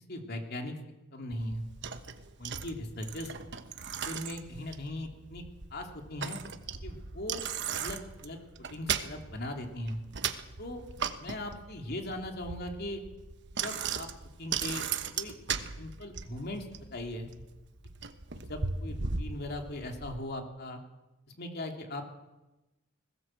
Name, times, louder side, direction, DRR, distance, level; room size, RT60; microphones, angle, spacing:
voice 1, 0.1-0.8 1.1-1.6 2.4-3.3 4.0-5.4 5.7-6.4 6.8-7.4 7.8-10.0 10.6-10.8 11.2-13.0 13.6-14.1 14.4-14.8 15.2-15.3 15.8-17.3 18.3-20.8 21.3-22.0, left 1 dB, 50° left, 3 dB, 3.0 m, -39 dB
Bicycle, 1.3-20.2, right 6 dB, 60° right, 1.2 m, -38 dB
20.5 x 17.0 x 7.8 m, 1.0 s
head